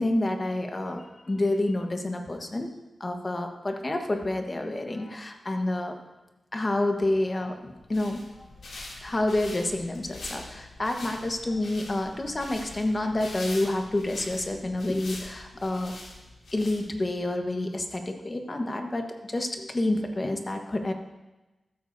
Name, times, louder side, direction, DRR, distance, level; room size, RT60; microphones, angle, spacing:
voice 1, 0.0-2.7 3.0-5.9 6.5-8.2 9.0-15.9 16.5-20.9, left 1 dB, 30° left, 4 dB, 1.3 m, -28 dB
sound 1, 7.7-17.2, left 2 dB, 85° left, 2.8 m, -44 dB
14.0 x 13.5 x 2.7 m, 1.1 s
wide cardioid pair, 110°, 0 cm